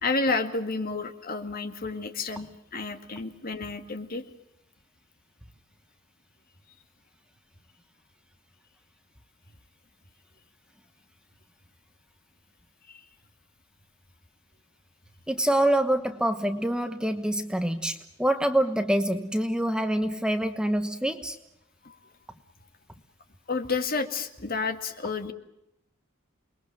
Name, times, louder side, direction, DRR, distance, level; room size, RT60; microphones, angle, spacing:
voice 1, 0.0-4.2 12.9-13.0 21.8-22.0 23.5-25.3, left 3 dB, 45° left, 8 dB, 2.1 m, -30 dB
voice 2, 15.3-21.4, right 1 dB, 5° right, 8 dB, 1.1 m, -26 dB
28.5 x 22.0 x 7.5 m, 0.85 s
head